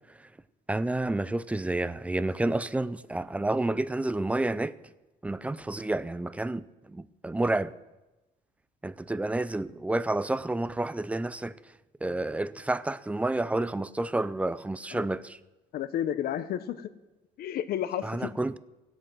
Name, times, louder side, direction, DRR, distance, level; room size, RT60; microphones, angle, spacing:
voice 1, 0.7-4.7 5.2-7.7 8.8-11.5 12.0-15.4 18.0-18.6, right 2 dB, 10° right, 0.5 m, -30 dB
voice 2, 15.7-16.9 17.4-18.3, left 10 dB, 65° left, 0.9 m, -31 dB
17.5 x 8.0 x 6.2 m
cardioid pair, 110°, 17 cm